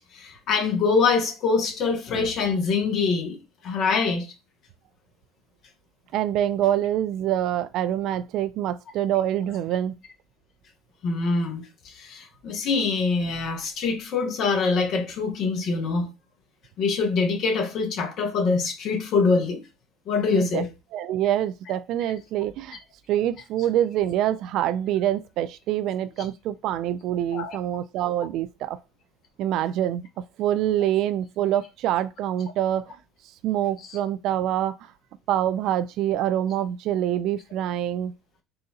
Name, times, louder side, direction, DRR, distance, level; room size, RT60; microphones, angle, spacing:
voice 1, 0.0-4.3 11.0-16.1 16.8-19.6 20.1-20.7 27.3-27.6 33.9-34.0, left 4 dB, 55° left, 1.1 m, -24 dB
voice 2, 6.1-9.9 20.3-20.6 20.9-22.8 23.1-28.8 29.4-30.1 30.4-33.0 33.4-34.8 35.3-38.1, right 11 dB, 65° right, 0.4 m, -25 dB
4.0 x 2.6 x 2.4 m
hypercardioid pair, 75°, 0 cm